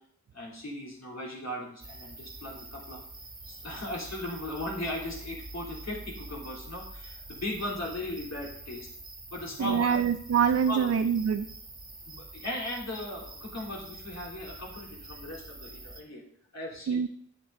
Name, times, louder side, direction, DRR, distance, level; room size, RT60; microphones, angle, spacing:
voice 1, 0.3-3.0 3.5-8.9 9.3-10.0 10.7-10.8 12.1-16.2 16.5-17.1, left 1 dB, 60° left, -3 dB, 3.1 m, -37 dB
sound 1, 1.8-16.0, right 2 dB, 30° right, 1.6 m, -46 dB
voice 2, 9.6-11.5 16.9-17.1, right 7 dB, 55° right, 8 dB, 0.5 m, -25 dB
9.8 x 7.1 x 3.8 m, 0.63 s
wide cardioid pair, 80°, 30 cm